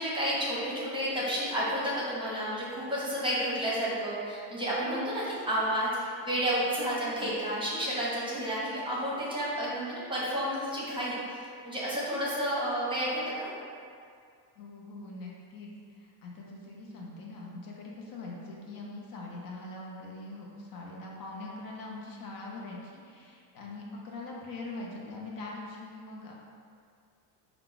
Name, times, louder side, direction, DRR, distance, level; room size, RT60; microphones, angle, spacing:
voice 1, 0.0-13.5, equal, 10° right, -7 dB, 0.8 m, -31 dB
voice 2, 6.6-7.4 14.6-15.7 16.0-26.4, left 2 dB, 50° left, -3 dB, 0.7 m, -42 dB
4.5 x 2.3 x 3.9 m, 2.3 s
cardioid pair, 135°, 45 cm